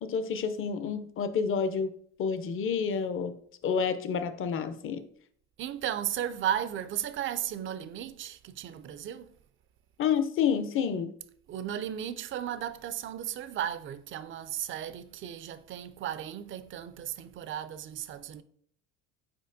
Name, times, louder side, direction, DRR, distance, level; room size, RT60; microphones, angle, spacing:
voice 1, 0.0-1.9 2.2-3.3 3.6-5.0 10.0-11.1, left 6 dB, 35° left, 0.5 m, -29 dB
voice 2, 5.6-9.4 11.5-18.4, right 10 dB, 35° right, 0.4 m, -35 dB
4.6 x 4.3 x 2.6 m
hypercardioid pair, 70°, 37 cm